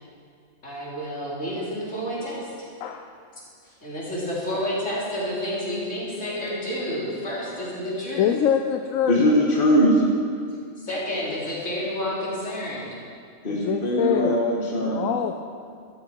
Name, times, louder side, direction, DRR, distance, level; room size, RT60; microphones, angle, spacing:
voice 1, 0.6-2.7 3.6-8.3 10.5-13.0, equal, 70° left, -7 dB, 4.1 m, -30 dB
voice 2, 2.8-3.1 8.2-9.2 13.5-14.4 14.8-15.3, left 9 dB, 85° left, 5 dB, 1.0 m, -24 dB
voice 3, 9.1-10.1 13.4-15.1, equal, 45° left, -3 dB, 1.9 m, -21 dB
14.0 x 12.5 x 4.6 m, 2.3 s
omnidirectional pair, 1.3 m